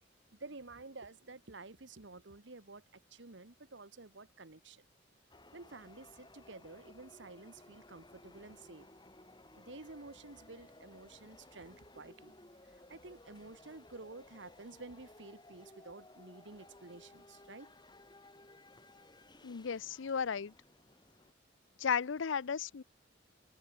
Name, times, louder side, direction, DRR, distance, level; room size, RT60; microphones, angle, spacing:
voice 1, 0.3-4.8 5.5-8.9 9.6-12.3 12.9-17.7, right 3 dB, 65° right, 1.4 m, -51 dB
sound 1, 5.3-21.3, left 2 dB, 20° left, 3.7 m, -59 dB
voice 2, 19.4-20.5 21.8-22.8, left 6 dB, 75° left, 0.5 m, -34 dB
head